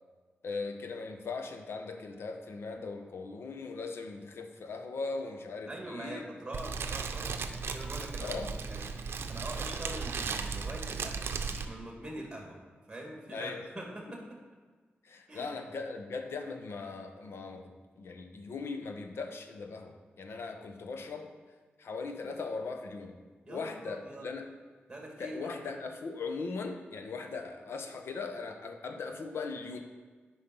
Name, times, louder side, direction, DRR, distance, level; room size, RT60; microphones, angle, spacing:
voice 1, 0.4-6.2 8.2-8.5 13.3-13.6 15.0-21.3 21.8-23.1 23.5-24.4 25.2-29.8, left 4 dB, 80° left, 5 dB, 0.9 m, -39 dB
voice 2, 5.7-8.4 8.6-8.9 9.3-12.6 12.9-14.4 15.3-15.5 23.4-24.3 24.9-25.6, right 1 dB, 20° right, -1 dB, 2.2 m, -43 dB
Fire, 6.5-11.6, right 5 dB, 75° right, 0.6 m, -36 dB
9.2 x 5.4 x 5.5 m, 1.4 s
cardioid pair, 85°, 4 cm